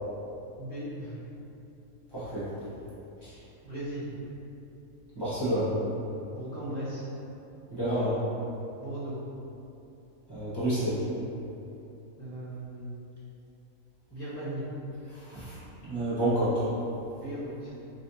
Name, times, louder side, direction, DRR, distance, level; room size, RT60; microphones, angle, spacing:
voice 1, 0.6-1.2 3.6-4.1 6.3-7.0 8.8-9.2 12.2-12.9 14.1-14.6 17.2-17.7, right 1 dB, 5° left, -16 dB, 1.3 m, -37 dB
voice 2, 2.1-2.5 3.2-3.3 5.1-5.7 7.7-8.2 10.3-11.0 15.1-15.6 15.9-16.6, right 1 dB, 20° right, -13 dB, 1.3 m, -29 dB
3.9 x 3.3 x 2.8 m, 2.9 s
omnidirectional pair, 1.5 m